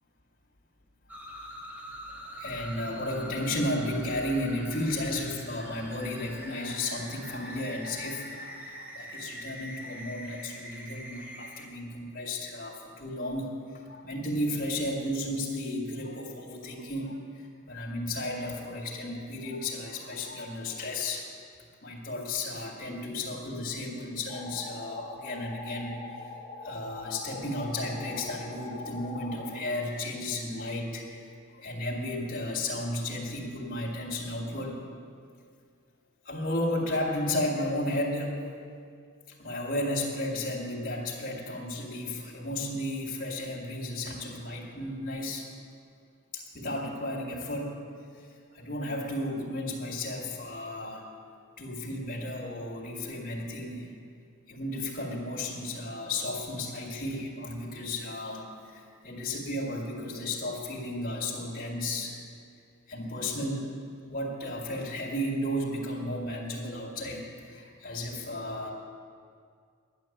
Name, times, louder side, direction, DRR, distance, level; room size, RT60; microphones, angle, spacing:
sound 1, 1.1-11.7, equal, 10° right, 1.1 m, -44 dB
voice 1, 2.0-21.2 21.8-26.3 26.6-34.9 36.3-38.4 39.4-45.5 46.3-47.8 48.1-48.3 48.5-51.0 51.6-53.9 54.5-62.2 62.9-63.8 64.1-68.7, left 1 dB, 40° left, -3 dB, 2.0 m, -34 dB
sound 2, 24.3-29.6, left 4 dB, 20° left, 1.4 m, -43 dB
11.5 x 9.0 x 7.3 m, 2.2 s
head